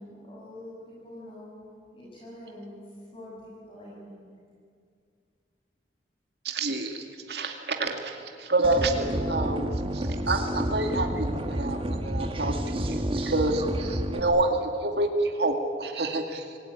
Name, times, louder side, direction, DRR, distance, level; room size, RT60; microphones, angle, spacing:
voice 1, 0.0-4.3, left 1 dB, 30° left, -6 dB, 6.5 m, -45 dB
voice 2, 6.4-16.4, right 2 dB, 65° right, 4 dB, 2.3 m, -28 dB
sound 1, 8.6-14.2, right 1 dB, 30° right, 1.6 m, -30 dB
26.0 x 18.0 x 9.8 m, 2.2 s
head